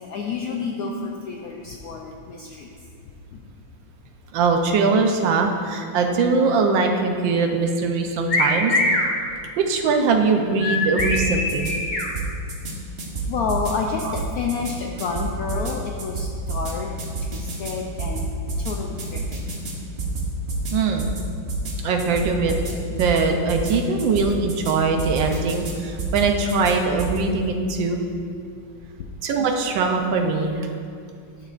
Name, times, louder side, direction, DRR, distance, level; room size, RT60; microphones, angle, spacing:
voice 1, 0.0-2.7 13.3-16.9 17.3-18.3 18.6-19.5 25.2-25.3, left 5 dB, 75° left, 1 dB, 0.8 m, -29 dB
voice 2, 4.3-8.7 9.6-11.7 14.0-14.1 20.2-20.3 20.7-21.2 21.8-22.5 23.0-28.0 29.2-30.7, right 4 dB, 75° right, 4 dB, 1.4 m, -21 dB
sound 1, 8.3-9.1 10.6-12.1, left 2 dB, 50° left, 0.5 m, -22 dB
sound 2, 11.0-11.7 12.0-12.7 13.0-13.7 14.0-14.7 15.0-15.7 16.0-16.7 17.0-17.7 18.0-18.7 19.0-19.7 20.0-20.7 21.0-21.2 21.5-21.7 22.0-22.7 23.0-23.2 23.5-23.7 24.0-24.7 25.0-25.7 26.0-26.7 27.0-27.2, right 3 dB, 40° right, 1.0 m, -28 dB
11.5 x 6.6 x 2.5 m, 2.4 s
omnidirectional pair, 2.1 m